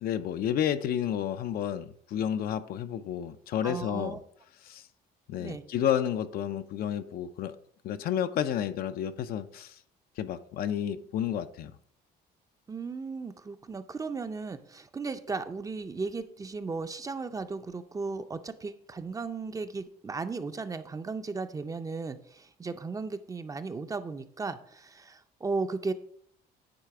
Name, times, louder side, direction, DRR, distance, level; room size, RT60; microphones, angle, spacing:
voice 1, 0.0-4.2 4.6-4.9 5.3-7.6 7.8-9.8 10.2-11.7, left 9 dB, 65° left, 0.5 m, -31 dB
voice 2, 3.6-4.2 5.4-5.6 12.7-25.9, right 4 dB, 20° right, 0.5 m, -36 dB
9.8 x 3.3 x 4.8 m
cardioid pair, 110°, 17 cm